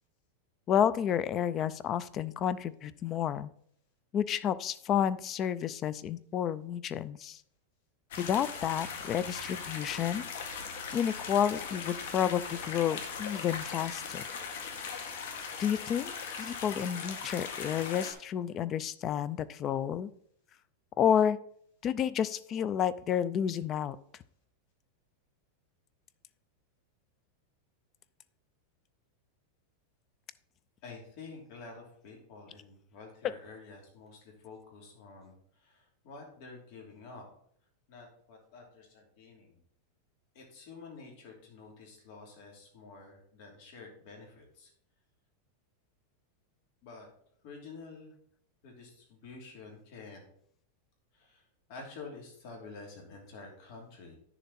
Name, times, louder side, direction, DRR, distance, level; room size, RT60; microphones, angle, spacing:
voice 1, 0.7-3.5 4.1-7.4 8.2-10.2 10.9-14.2 15.6-20.1 21.0-21.4 21.8-24.0 33.2-33.3, left 9 dB, 25° left, 17 dB, 0.4 m, -30 dB
sound 1, 8.1-18.1, left 6 dB, 65° left, 1.7 m, -39 dB
voice 2, 30.8-37.3 37.9-39.6 40.3-44.7 46.8-47.1 47.4-48.1 48.6-50.2 51.1-54.1, left 4 dB, 45° left, 1 dB, 3.0 m, -49 dB
9.6 x 7.0 x 4.2 m, 0.66 s
supercardioid pair, 165°, 0 cm